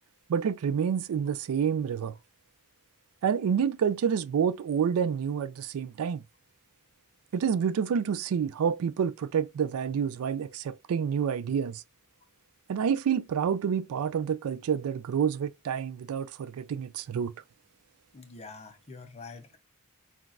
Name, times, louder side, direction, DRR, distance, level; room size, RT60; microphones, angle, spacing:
voice 1, 0.3-2.1 3.2-6.2 7.3-11.8 12.7-17.3, right 7 dB, 80° right, 0.3 m, -28 dB
voice 2, 18.1-19.6, left 4 dB, 30° left, 0.7 m, -45 dB
5.7 x 2.4 x 2.5 m
head